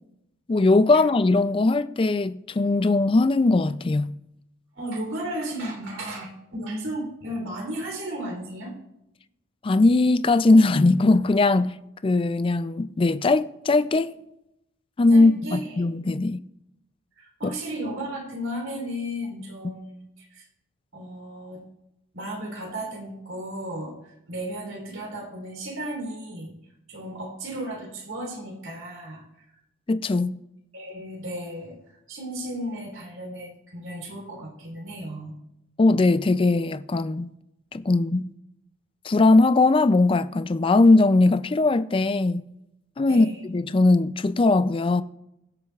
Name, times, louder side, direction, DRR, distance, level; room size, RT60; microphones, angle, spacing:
voice 1, 0.5-4.2 9.6-11.8 12.0-14.1 15.0-16.4 17.4-17.5 29.9-30.4 35.8-37.3 37.7-38.3 39.0-42.4 43.0-45.0, left 2 dB, 25° left, 0.3 m, -20 dB
voice 2, 4.7-8.7 15.1-15.8 17.2-20.5 20.9-21.6 22.1-26.5 26.9-29.2 30.7-35.3 43.1-43.4, right 1 dB, 75° right, 3.4 m, -34 dB
21.5 x 7.7 x 2.4 m
head